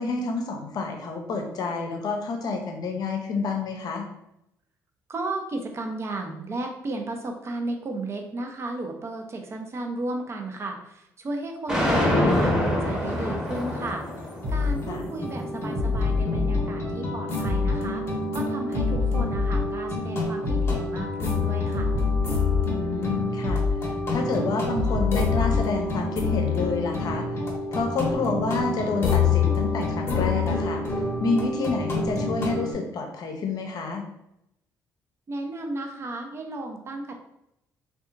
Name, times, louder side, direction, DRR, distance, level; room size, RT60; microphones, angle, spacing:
voice 1, 0.0-4.0 14.9-15.0 22.7-23.6 24.1-27.3 27.7-30.8 31.2-34.0, left 3 dB, 60° left, 3 dB, 0.6 m, -28 dB
voice 2, 5.1-14.0 14.5-21.9 35.3-37.1, right 2 dB, 35° right, 3 dB, 0.5 m, -34 dB
sound 1, 11.7-17.8, left 1 dB, 10° right, 0.9 m, -27 dB
sound 2, 13.8-13.9 14.2-32.7, left 3 dB, 35° left, 0.8 m, -28 dB
sound 3, 14.4-14.8 15.7-16.6 17.4-17.8 18.7-19.7 20.4-20.8 21.7-22.7 23.4-23.8 24.7-25.7, left 4 dB, 85° right, 0.9 m, -25 dB
2.7 x 2.3 x 2.5 m, 0.81 s
supercardioid pair, 80°, 8 cm